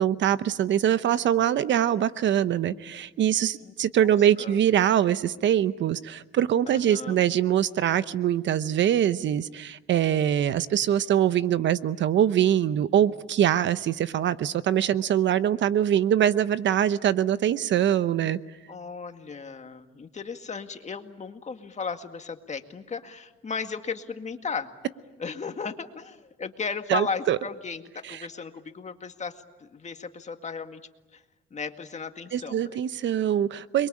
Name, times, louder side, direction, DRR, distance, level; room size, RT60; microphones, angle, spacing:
voice 1, 0.0-18.4 26.9-27.4 28.0-28.2 32.3-33.9, right 10 dB, 70° right, 14 dB, 0.9 m, -23 dB
voice 2, 6.7-7.2 18.7-24.7 25.2-30.8 31.1-31.2 31.5-32.8, left 5 dB, 35° left, 7 dB, 2.0 m, -35 dB
29.0 x 22.5 x 8.6 m, 1.1 s
cardioid pair, 90°, 20 cm